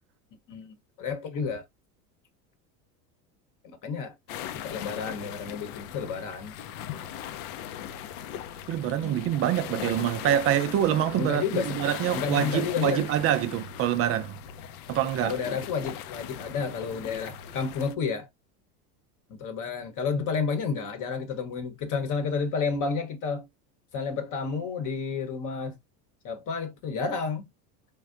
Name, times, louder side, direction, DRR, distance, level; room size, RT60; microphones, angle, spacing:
voice 1, 0.5-1.6 3.6-4.1 4.6-6.5 8.8-9.3 11.2-11.8 12.1-13.1 15.2-18.3 19.4-23.5 23.9-25.8 26.2-27.5, left 5 dB, 45° left, 0.9 m, -31 dB
sound 1, 4.3-17.9, left 10 dB, 75° left, 0.5 m, -39 dB
voice 2, 8.7-14.4 14.9-15.4, right 11 dB, 35° right, 0.4 m, -26 dB
3.4 x 2.2 x 2.4 m
hypercardioid pair, 95°, 45 cm